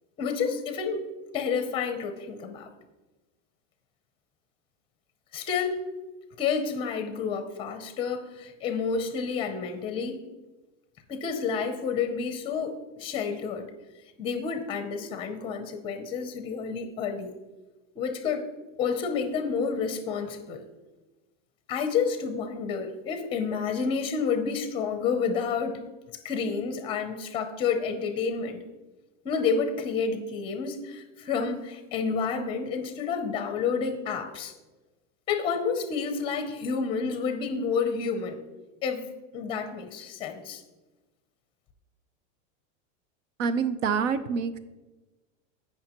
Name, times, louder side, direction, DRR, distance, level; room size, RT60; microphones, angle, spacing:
voice 1, 0.2-1.0 1.3-2.7 5.3-5.8 6.4-10.1 11.1-13.7 14.2-17.3 17.9-18.4 18.8-20.6 21.7-25.8 26.2-28.6 29.2-34.5 35.3-38.4 38.8-39.1 39.3-40.6, left 5 dB, 15° left, 7 dB, 0.6 m, -29 dB
voice 2, 43.4-44.6, right 6 dB, 75° right, 13 dB, 0.9 m, -26 dB
17.0 x 5.7 x 3.0 m, 1.1 s
supercardioid pair, 180°, 38 cm